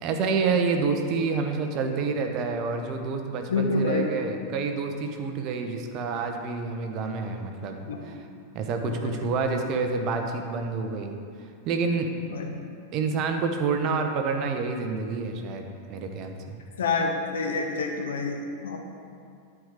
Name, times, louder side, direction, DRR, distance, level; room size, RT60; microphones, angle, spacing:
voice 1, 0.0-8.2 8.5-11.2 11.6-12.1 12.9-16.6, right 4 dB, 40° right, 4 dB, 0.8 m, -28 dB
voice 2, 3.5-4.1 7.9-8.0 8.8-9.1 12.2-12.6 16.8-18.8, left 3 dB, 65° left, 2 dB, 1.0 m, -28 dB
9.4 x 4.8 x 4.9 m, 2.3 s
figure-of-eight pair, 90°, 0 cm